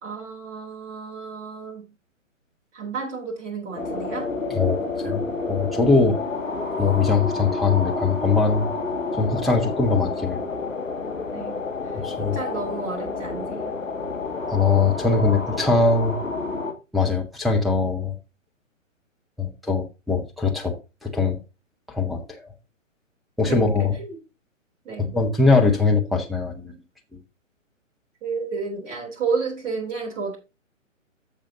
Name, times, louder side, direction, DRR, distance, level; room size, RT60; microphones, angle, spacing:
voice 1, 0.0-1.9 2.7-4.3 5.9-6.2 11.3-13.7 23.5-23.6 23.9-24.2 24.8-25.1 28.2-30.4, right 5 dB, 20° right, 3.4 m, -31 dB
sound 1, 3.8-16.7, left 3 dB, 75° left, 2.2 m, -29 dB
voice 2, 5.5-6.1 6.8-8.7 9.1-10.4 11.9-12.4 14.5-16.2 16.9-18.1 19.4-20.8 21.0-21.4 21.9-22.5 23.4-24.0 25.0-26.8, left 4 dB, ahead, 0.7 m, -21 dB
14.5 x 5.1 x 2.8 m
figure-of-eight pair, 135°, 39 cm